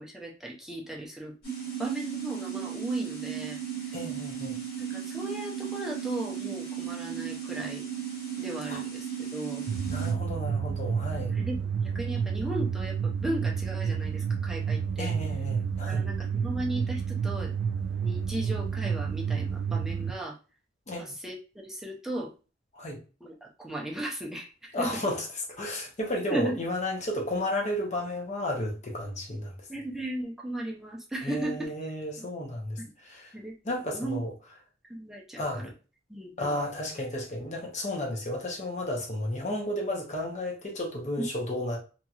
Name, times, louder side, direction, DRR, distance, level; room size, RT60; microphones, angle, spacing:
voice 1, 0.0-1.3 1.8-3.6 4.8-7.9 8.4-9.6 11.2-15.1 15.8-17.5 18.0-20.4 21.0-22.3 23.2-25.0 26.3-26.5 29.7-31.7 32.8-32.9 33.3-33.5 33.9-34.2 34.9-35.6 36.1-36.6 41.2-41.3, right 1 dB, ahead, 0.5 m, -36 dB
sound 1, 1.4-10.1, right 9 dB, 55° left, 1.5 m, -36 dB
voice 2, 3.9-4.6 8.7-8.8 9.9-11.4 15.0-16.0 20.9-21.2 22.7-23.0 24.7-25.2 25.6-29.5 31.2-33.3 33.7-34.3 35.4-35.7 36.4-41.8, left 1 dB, 40° left, 0.7 m, -33 dB
sound 2, 9.7-20.1, right 6 dB, 60° right, 0.3 m, -30 dB
2.8 x 2.7 x 2.3 m
head